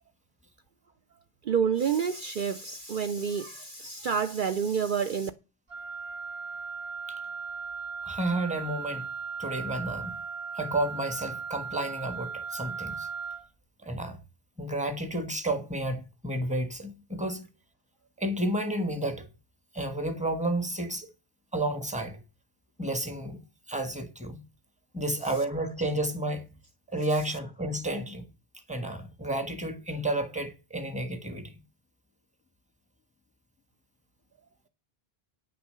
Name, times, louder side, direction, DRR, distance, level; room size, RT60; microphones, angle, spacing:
voice 1, 1.4-5.3, right 6 dB, 55° right, 0.8 m, -28 dB
Wind instrument woodwind instrument, 5.7-13.5, right 5 dB, 30° right, 1.2 m, -37 dB
voice 2, 8.0-9.1 9.4-10.2 10.5-13.1 13.8-14.2 14.6-17.5 18.2-19.3 19.7-21.1 21.5-22.2 22.8-23.4 23.7-24.4 24.9-26.5 26.9-28.3 28.7-31.5, right 1 dB, 5° right, 1.3 m, -31 dB
9.2 x 6.7 x 6.7 m
omnidirectional pair, 1.1 m